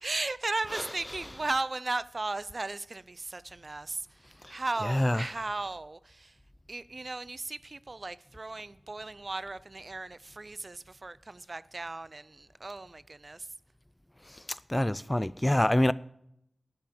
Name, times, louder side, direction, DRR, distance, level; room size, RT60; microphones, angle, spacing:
voice 1, 0.0-4.1 4.5-6.3 6.7-13.5, right 2 dB, 45° right, 0.5 m, -36 dB
voice 2, 0.7-1.5 4.8-5.4 14.5-15.9, left 1 dB, 15° left, 0.3 m, -27 dB
11.0 x 5.9 x 8.8 m
cardioid pair, 50°, 0 cm